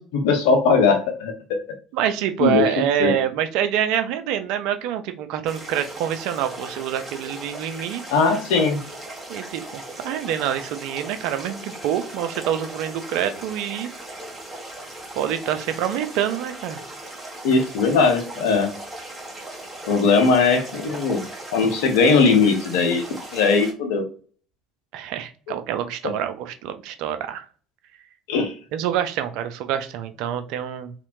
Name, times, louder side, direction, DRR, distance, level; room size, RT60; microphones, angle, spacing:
voice 1, 0.0-1.6 2.4-2.7 3.0-3.1 8.1-8.8 17.4-18.7 19.9-21.2 21.5-23.1 23.3-24.1 26.0-26.1 28.3-28.5, left 4 dB, 65° left, 7 dB, 0.6 m, -19 dB
voice 2, 1.9-8.0 9.3-13.9 15.1-16.8 24.9-27.5 28.7-30.9, right 10 dB, 60° right, 9 dB, 0.3 m, -26 dB
sound 1, 5.5-23.7, right 1 dB, 20° right, 1.4 m, -38 dB
2.8 x 2.1 x 2.4 m, 0.40 s
figure-of-eight pair, 60°, 0 cm